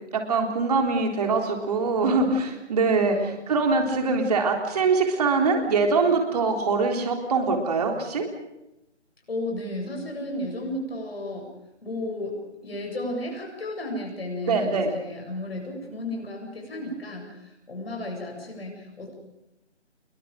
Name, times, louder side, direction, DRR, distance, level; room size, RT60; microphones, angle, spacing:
voice 1, 0.1-8.3 14.5-14.9, right 4 dB, 35° right, 3 dB, 3.7 m, -23 dB
voice 2, 2.9-3.4 9.3-11.5 11.8-12.3 12.6-19.1, left 1 dB, 55° left, 1 dB, 7.7 m, -33 dB
27.5 x 22.5 x 5.2 m, 0.92 s
figure-of-eight pair, 150°, 35 cm